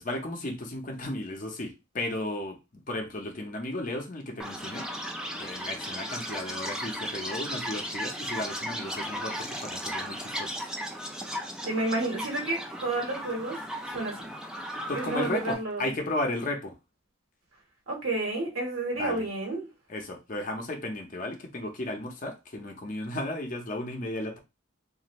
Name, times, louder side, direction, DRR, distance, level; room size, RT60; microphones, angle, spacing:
voice 1, 0.0-4.9 5.4-10.5 14.9-16.7 19.0-19.3 19.9-24.4, left 1 dB, 40° left, 0.7 m, -34 dB
Chirp tweet, 4.4-15.5, equal, 5° right, 0.3 m, -36 dB
voice 2, 11.7-13.6 13.9-14.3 14.9-15.9 17.9-19.7, right 2 dB, 85° right, 1.2 m, -30 dB
2.5 x 2.4 x 3.0 m
head